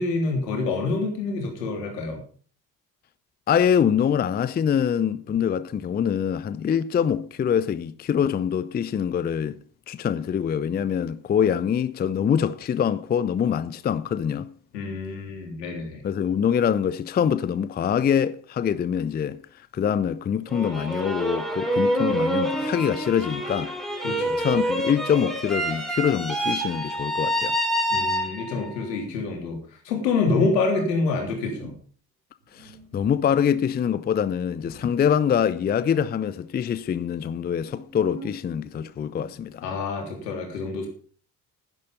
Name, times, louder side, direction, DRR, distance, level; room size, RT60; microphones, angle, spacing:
voice 1, 0.0-2.2 14.7-16.0 24.0-24.3 27.9-29.6 29.9-31.8 39.6-40.9, left 3 dB, 75° left, 3.5 m, -26 dB
voice 2, 3.5-9.6 9.9-14.5 16.0-19.4 19.7-23.7 24.4-27.6 32.5-39.6, left 8 dB, 20° left, 0.5 m, -24 dB
sound 1, 20.5-28.7, equal, ahead, 3.7 m, -27 dB
sound 2, 30.6-31.8 32.4-35.9 36.2-36.8 37.5-39.5, equal, 90° right, 4.0 m, -46 dB
11.0 x 11.0 x 5.3 m
figure-of-eight pair, 55°, 50 cm